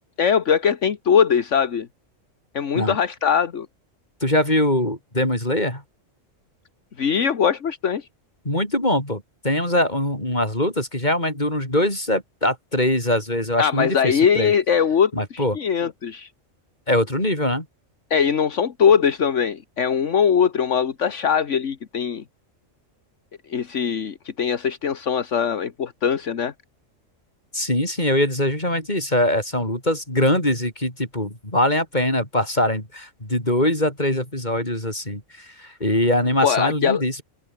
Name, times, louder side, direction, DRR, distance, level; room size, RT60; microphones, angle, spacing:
voice 1, 0.2-1.9 2.6-3.7 7.0-8.1 13.6-16.3 18.1-22.2 23.5-26.5 36.4-37.0, left 7 dB, 70° left, 1.6 m, -21 dB
voice 2, 4.2-5.8 8.4-14.5 15.1-15.6 16.9-17.7 27.5-37.2, left 1 dB, 35° left, 7.7 m, -22 dB
open air
omnidirectional pair, 1.3 m